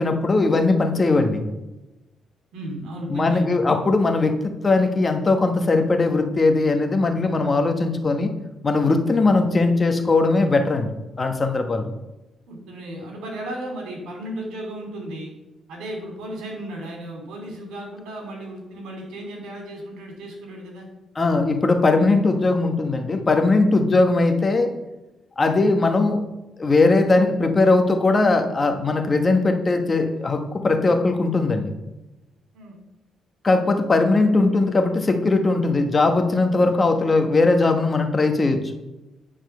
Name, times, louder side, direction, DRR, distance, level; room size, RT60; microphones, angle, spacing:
voice 1, 0.0-1.4 3.1-4.4 4.6-8.3 8.6-10.9 11.2-11.9 21.1-24.7 25.4-26.2 26.6-31.7 33.4-38.7, left 3 dB, 30° left, 5 dB, 1.2 m, -19 dB
voice 2, 2.5-3.6 11.8-11.9 12.5-15.3 15.7-20.9 32.5-32.8, right 1 dB, 90° right, 1 dB, 3.0 m, -35 dB
9.4 x 4.3 x 6.8 m, 1.0 s
cardioid pair, 90°, 0 cm